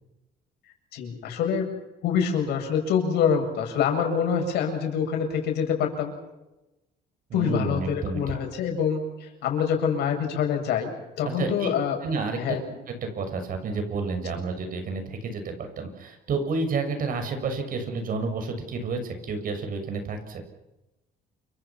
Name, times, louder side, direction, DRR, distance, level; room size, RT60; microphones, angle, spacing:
voice 1, 0.9-1.7 2.0-6.1 7.3-12.0 12.4-12.6, left 7 dB, 75° left, 3 dB, 7.7 m, -26 dB
voice 2, 7.3-8.4 11.2-11.7 12.0-12.6 12.9-20.4, right 4 dB, 55° right, 7 dB, 6.4 m, -30 dB
29.0 x 25.5 x 6.0 m, 0.98 s
cardioid pair, 110°, 17 cm